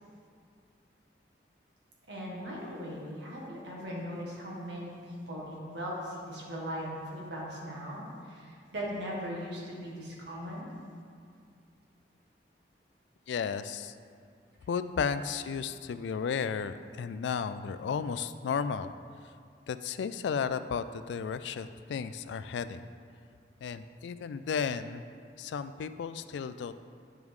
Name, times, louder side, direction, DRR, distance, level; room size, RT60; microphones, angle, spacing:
voice 1, 2.1-10.7 14.9-15.0, equal, 75° right, -4 dB, 1.8 m, -39 dB
voice 2, 13.3-14.0 14.7-18.9 19.7-22.8 23.6-25.0 25.4-26.8, left 6 dB, 80° left, 12 dB, 0.3 m, -34 dB
10.5 x 4.7 x 3.6 m, 2.3 s
head